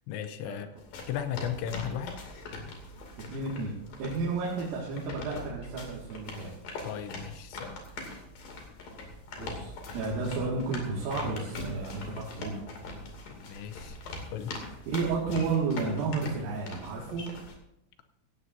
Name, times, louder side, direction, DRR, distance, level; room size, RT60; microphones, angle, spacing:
voice 1, 0.1-0.7 1.1-2.2 6.8-7.8 13.3-14.0 14.3-14.6, left 9 dB, 80° left, 9 dB, 2.8 m, -36 dB
sound 1, 0.8-17.5, left 2 dB, 50° left, 3.6 m, -42 dB
voice 2, 3.3-3.7 4.0-6.5 9.4-12.7 14.9-17.2, right 4 dB, 85° right, -5 dB, 4.6 m, -32 dB
17.0 x 15.5 x 2.6 m, 0.81 s
omnidirectional pair, 5.8 m